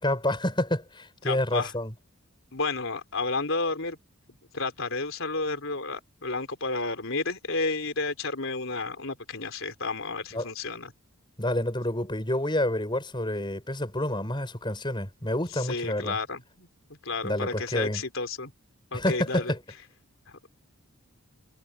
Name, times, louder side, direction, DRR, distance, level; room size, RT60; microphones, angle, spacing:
voice 1, 0.0-1.9 10.3-10.5 11.4-16.2 17.2-18.0 18.9-19.6, left 1 dB, 20° left, 6.9 m, -28 dB
voice 2, 1.2-1.7 2.5-4.0 4.5-10.9 15.5-16.7 17.0-18.5 18.9-19.5, left 3 dB, 65° left, 4.1 m, -31 dB
head